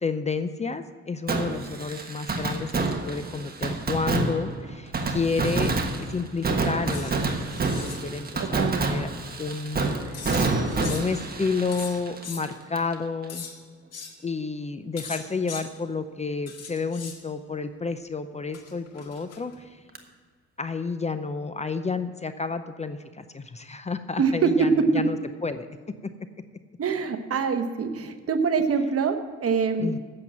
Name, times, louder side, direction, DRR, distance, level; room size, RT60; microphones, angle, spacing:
voice 1, 0.0-5.7 6.0-9.1 9.4-10.4 10.8-13.5 14.2-19.7 20.6-25.2 25.4-25.7 29.8-30.0, left 4 dB, 20° left, 10 dB, 0.6 m, -30 dB
Fireworks, 1.3-13.0 13.2-13.3 20.0-20.1, right 3 dB, 30° right, 1.4 m, -28 dB
sound 1, 6.9-7.2 7.5-8.0 10.1-11.2 11.7-12.4 13.3-13.5 13.9-14.1 15.0-15.7 16.5-17.2 18.5-19.6, left 6 dB, 55° left, 1.8 m, -39 dB
voice 2, 8.4-8.9 24.2-25.0 26.8-30.0, right 5 dB, 50° right, 7 dB, 1.1 m, -24 dB
8.3 x 7.6 x 8.7 m, 1.5 s
cardioid pair, 90°, 30 cm